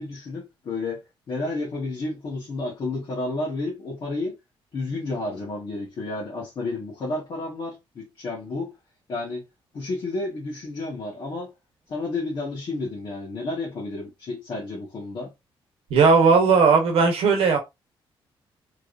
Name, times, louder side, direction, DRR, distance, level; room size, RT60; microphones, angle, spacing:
voice 1, 0.0-4.4 4.7-8.7 9.1-9.4 9.7-11.5 11.9-15.3, left 2 dB, 50° left, 1.4 m, -31 dB
voice 2, 15.9-17.6, right 5 dB, 90° right, 1.0 m, -17 dB
3.5 x 3.1 x 2.5 m
cardioid pair, 145°, 9 cm